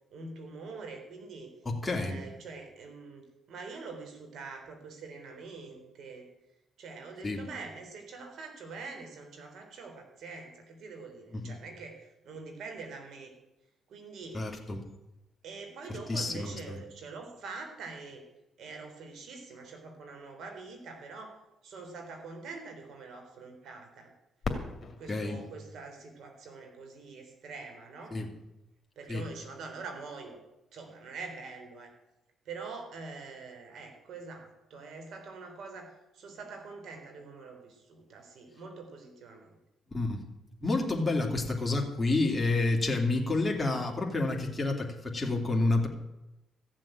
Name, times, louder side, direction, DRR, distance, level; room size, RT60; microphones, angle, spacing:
voice 1, 0.1-1.5 1.9-6.3 6.8-13.3 13.9-14.7 15.4-18.2 18.6-24.1 25.0-28.2 29.0-30.4 30.7-31.9 32.5-39.5, right 4 dB, 70° right, 4 dB, 3.9 m, -45 dB
voice 2, 1.6-2.2 7.2-7.4 11.3-11.5 14.3-14.8 16.1-16.8 25.1-25.4 28.1-28.3 29.1-29.2 39.9-40.2 40.6-45.9, left 2 dB, 15° left, -1 dB, 2.9 m, -29 dB
Fireworks, 24.4-27.2 27.9-28.0 28.7-29.1 31.0-31.1, left 4 dB, 45° left, 2.5 m, -40 dB
15.0 x 7.5 x 8.9 m, 0.94 s
cardioid pair, 90°, 0 cm